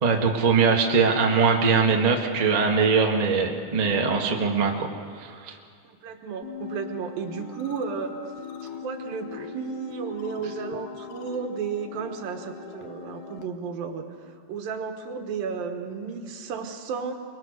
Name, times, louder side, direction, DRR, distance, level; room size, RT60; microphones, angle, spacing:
voice 1, 0.0-4.9 5.2-5.6, right 5 dB, 65° right, 1 dB, 0.4 m, -22 dB
voice 2, 5.8-8.1 8.6-14.1 14.5-17.1, right 6 dB, 85° right, 4 dB, 3.2 m, -33 dB
sound 1, 6.4-13.4, left 7 dB, 70° left, 1.4 m, -40 dB
23.0 x 22.5 x 6.5 m, 2.2 s
omnidirectional pair, 4.0 m